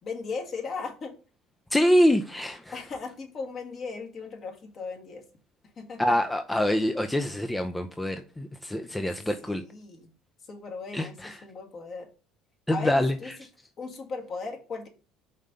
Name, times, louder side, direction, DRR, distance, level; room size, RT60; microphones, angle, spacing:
voice 1, 0.0-1.2 2.7-5.2 5.8-6.2 9.4-10.1 10.5-12.1 12.7-13.3 13.8-14.9, left 4 dB, 45° left, 1.9 m, -37 dB
voice 2, 1.7-2.7 6.0-9.6 10.9-11.4 12.7-13.2, equal, 10° left, 0.5 m, -25 dB
5.4 x 3.7 x 5.3 m
supercardioid pair, 80°, 0 cm